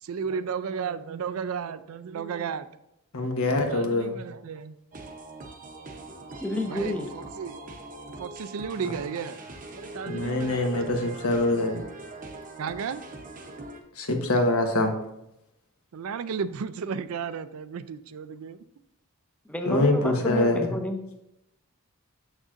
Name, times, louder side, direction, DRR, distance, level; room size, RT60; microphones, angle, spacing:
voice 1, 0.0-2.7 3.5-4.8 6.7-7.6 8.2-9.4 9.8-11.2 12.6-13.0 15.9-18.6, right 6 dB, 75° right, 13 dB, 0.4 m, -34 dB
voice 2, 3.1-4.2 10.1-11.8 14.0-14.9 19.7-20.7, left 2 dB, 75° left, 4 dB, 1.1 m, -24 dB
sound 1, 4.9-13.8, right 2 dB, 35° right, 0.8 m, -42 dB
voice 3, 6.4-7.1 19.5-21.0, left 1 dB, 5° left, 4 dB, 0.6 m, -30 dB
7.4 x 6.4 x 2.5 m, 0.84 s
head